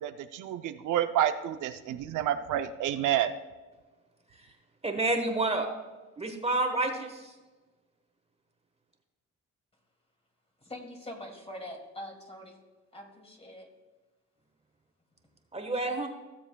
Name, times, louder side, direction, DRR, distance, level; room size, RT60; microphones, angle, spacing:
voice 1, 0.0-3.3, right 11 dB, 80° right, 8 dB, 0.6 m, -29 dB
voice 2, 4.8-5.7 6.2-7.2 15.5-16.1, right 2 dB, 20° right, 5 dB, 1.3 m, -29 dB
voice 3, 10.6-12.6 12.9-13.7, left 1 dB, 20° left, 2 dB, 2.3 m, -43 dB
16.0 x 7.2 x 2.3 m, 1.2 s
cardioid pair, 90°, 30 cm